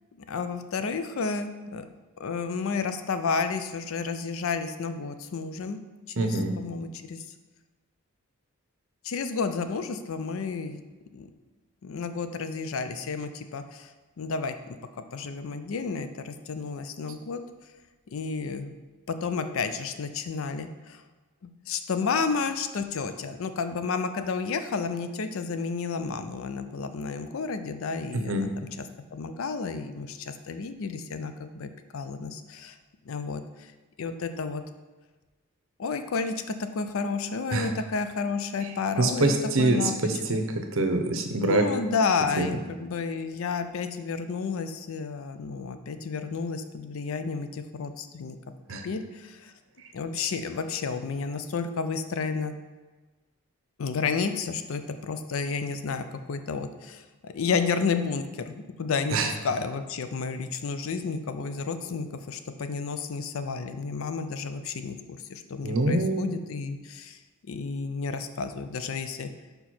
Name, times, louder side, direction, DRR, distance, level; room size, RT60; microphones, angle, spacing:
voice 1, 0.3-1.8 2.2-5.8 6.1-7.3 9.0-10.8 11.1-11.3 11.8-13.9 14.2-14.8 15.1-17.4 18.1-18.7 19.1-21.0 21.4-28.9 29.1-32.8 33.1-33.4 34.0-34.6 35.8-39.9 41.4-48.4 48.8-49.5 49.9-52.5 53.8-59.2 59.4-69.3, left 5 dB, 70° left, 9 dB, 0.4 m, -31 dB
voice 2, 6.2-6.5 28.1-28.5 37.5-37.7 39.0-40.4 40.7-41.6 42.4-42.6 48.7-48.8 59.1-59.3 65.6-66.3, right 2 dB, 65° right, 5 dB, 0.7 m, -25 dB
5.1 x 4.5 x 4.3 m, 1.3 s
head